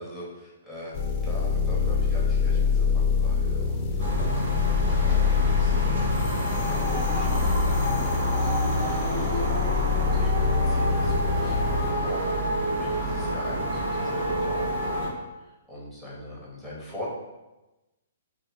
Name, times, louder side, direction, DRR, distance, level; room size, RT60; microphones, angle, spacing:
voice 1, 0.0-12.2 12.7-15.0 15.4-17.1, equal, 5° right, -7 dB, 0.9 m, -42 dB
sound 1, 0.9-11.9, left 5 dB, 30° left, 0.4 m, -25 dB
sound 2, 4.0-15.1, right 1 dB, 60° right, 0.9 m, -29 dB
3.3 x 2.1 x 3.1 m, 1.1 s
figure-of-eight pair, 120°, 0 cm